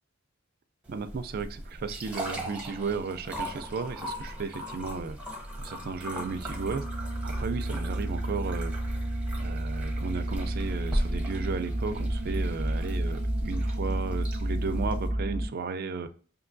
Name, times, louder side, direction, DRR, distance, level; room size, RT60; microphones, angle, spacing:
sound 1, 0.9-15.1, equal, 5° right, 0.7 m, -38 dB
voice 1, 0.9-5.2 5.6-6.9 7.2-8.7 9.4-16.1, right 4 dB, 45° right, 8 dB, 0.4 m, -34 dB
sound 2, 6.2-15.4, right 1 dB, 20° left, 2.0 m, -31 dB
5.4 x 2.7 x 2.6 m, 0.43 s
head